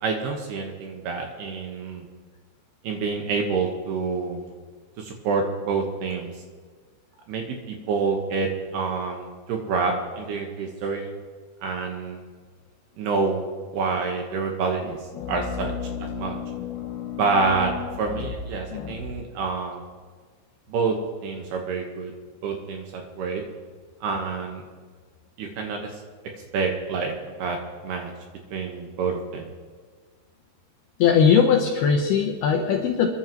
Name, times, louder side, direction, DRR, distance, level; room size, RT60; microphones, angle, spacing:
voice 1, 0.0-2.1 2.8-4.5 5.0-6.3 7.3-11.1 11.6-12.2 13.0-13.4 13.7-15.0 15.3-15.7 16.0-16.4 17.2-17.7 18.0-19.8 20.7-22.1 22.4-23.4 24.0-24.6 25.4-26.0 26.5-27.1 27.4-27.6 27.8-28.1 28.5-29.5, right 4 dB, 70° right, 2 dB, 2.7 m, -27 dB
voice 2, 15.2-18.3 18.7-19.0 31.0-33.1, left 7 dB, 80° left, 1 dB, 2.3 m, -23 dB
28.5 x 11.0 x 3.0 m, 1.5 s
omnidirectional pair, 5.7 m